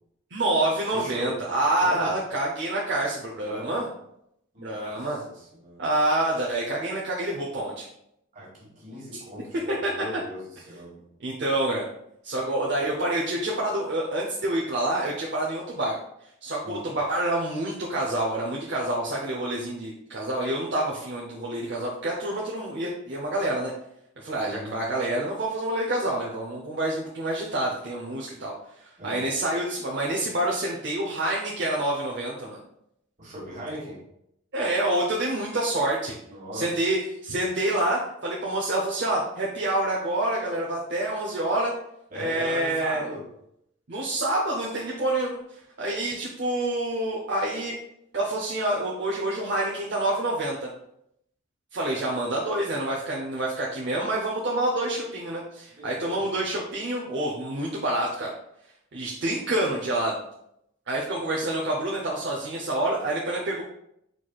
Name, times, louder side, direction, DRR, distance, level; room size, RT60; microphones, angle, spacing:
voice 1, 0.3-3.9 4.6-5.2 5.8-7.9 9.1-9.2 9.7-9.9 11.2-11.8 12.2-16.0 16.4-23.7 24.2-28.5 29.0-32.6 34.5-36.2 36.5-41.7 42.1-43.0 43.9-45.3 45.8-47.8 48.1-50.7 51.7-58.3 58.9-60.2 60.9-63.6, right 1 dB, 55° right, -4 dB, 0.7 m, -27 dB
voice 2, 0.9-1.5 1.8-2.2 3.4-3.8 4.5-5.8 8.3-11.1 16.6-16.8 24.4-24.8 29.0-29.2 33.2-34.0 36.3-36.7 42.1-43.3 55.8-56.5, equal, 40° right, -4 dB, 1.6 m, -38 dB
4.6 x 4.2 x 2.3 m, 0.76 s
head